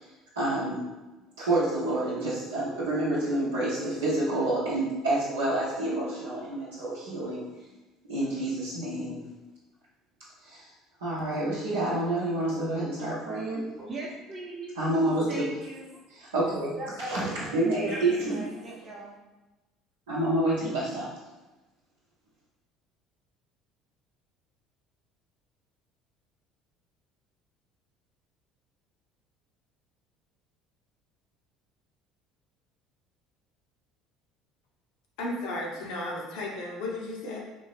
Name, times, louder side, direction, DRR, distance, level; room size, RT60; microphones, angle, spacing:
voice 1, 0.4-0.8 1.4-7.4 8.1-9.3 10.4-10.7 11.0-13.7 14.8-15.5 16.1-16.7 17.1-18.5 20.1-21.1, right 1 dB, 80° right, 0.7 m, -28 dB
voice 2, 13.8-14.8 15.3-15.9 16.8-17.8 18.1-19.2, right 2 dB, 30° right, 0.8 m, -40 dB
voice 3, 35.2-37.4, left 2 dB, 65° left, 0.8 m, -34 dB
3.5 x 2.7 x 3.3 m
hypercardioid pair, 60°, 0 cm